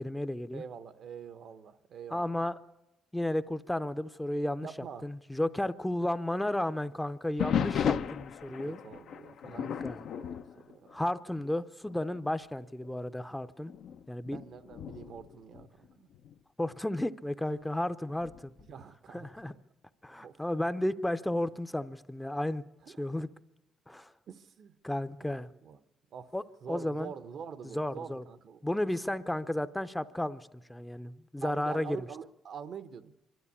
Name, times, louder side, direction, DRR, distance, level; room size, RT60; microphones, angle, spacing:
voice 1, 0.0-0.6 2.1-2.5 3.1-4.7 5.0-8.8 9.4-10.0 10.9-13.7 14.1-14.4 16.6-18.5 19.1-19.5 20.0-22.6 23.0-23.3 23.9-24.1 24.8-25.5 26.3-26.4 26.7-27.1 27.7-28.2 28.6-32.0, left 1 dB, 5° left, 0.6 m, -33 dB
voice 2, 0.5-2.4 4.6-5.1 8.5-11.0 14.3-16.1 18.7-19.5 20.2-20.4 22.8-23.2 24.3-24.8 25.2-25.8 26.1-26.3 26.6-28.6 31.4-33.1, right 7 dB, 65° right, 0.9 m, -46 dB
sound 1, 7.4-11.5 11.9-12.2 12.8-12.9 13.7-16.4 18.2-18.7, left 8 dB, 70° left, 0.7 m, -35 dB
25.0 x 12.5 x 8.4 m
cardioid pair, 90°, 0 cm